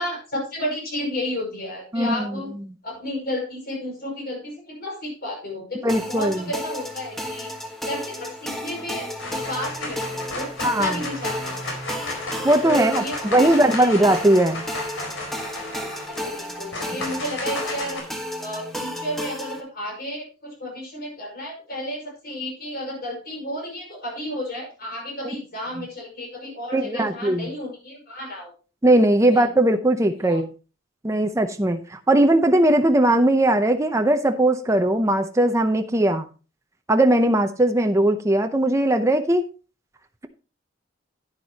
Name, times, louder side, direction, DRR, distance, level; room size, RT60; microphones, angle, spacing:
voice 1, 0.0-2.5 2.8-7.5 7.8-11.7 12.6-14.1 14.5-14.7 16.1-18.0 18.4-28.5 29.3-29.5 30.2-30.4, left 1 dB, 55° left, -1 dB, 5.6 m, -32 dB
voice 2, 1.9-2.4 5.8-6.4 10.6-11.0 12.4-14.6 26.7-27.5 28.8-30.5 31.0-36.3 36.9-39.4, right 1 dB, 15° right, 6 dB, 0.7 m, -19 dB
sound 1, 5.9-19.6, equal, ahead, 1.4 m, -33 dB
sound 2, 8.5-8.9 9.2-18.0, left 2 dB, 85° left, 4.1 m, -34 dB
10.5 x 9.7 x 2.9 m, 0.33 s
head